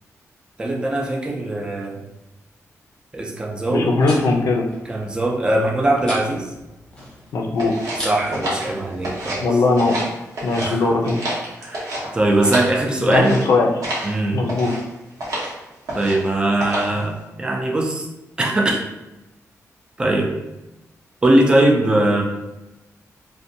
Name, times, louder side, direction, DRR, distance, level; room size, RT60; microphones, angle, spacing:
voice 1, 0.6-2.0 3.1-3.9 4.9-6.5 8.0-9.4 10.6-10.9 11.6-11.9 12.1-13.4 14.0-14.4 15.9-18.1 18.4-18.8 20.0-20.3 21.2-22.2, right 1 dB, 15° right, 0 dB, 0.3 m, -20 dB
sound 1, 3.6-9.4, equal, 15° left, 0.8 m, -38 dB
voice 2, 3.7-4.6 7.3-7.7 9.4-10.0 10.4-11.2 13.1-13.7 14.3-14.7, left 3 dB, 70° left, 0 dB, 0.4 m, -19 dB
sound 2, 7.6-9.5 9.7-10.7 11.0-12.8 13.1-13.4 13.8-14.1 14.5-14.8 15.2-15.5 15.9-16.3 16.6-17.0, right 1 dB, 90° right, 0.8 m, -28 dB
2.6 x 2.1 x 2.6 m, 0.98 s
wide cardioid pair, 170°, 6 cm